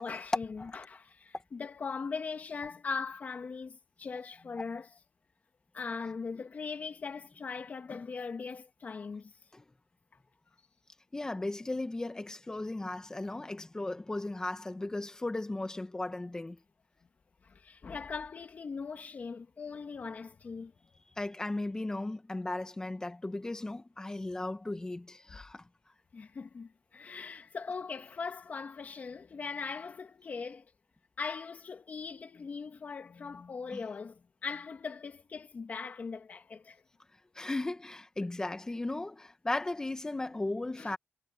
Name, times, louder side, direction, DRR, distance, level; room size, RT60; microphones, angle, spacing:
voice 1, 0.0-4.9 5.7-9.3 17.4-20.7 25.3-25.4 26.1-30.7 31.2-36.8 38.2-38.3 40.8-41.0, left 5 dB, 45° left, 2.0 m, -40 dB
voice 2, 11.1-16.6 21.2-25.6 33.7-33.8 37.4-41.0, left 2 dB, 15° left, 1.8 m, -36 dB
wide cardioid pair, 120°, 4 cm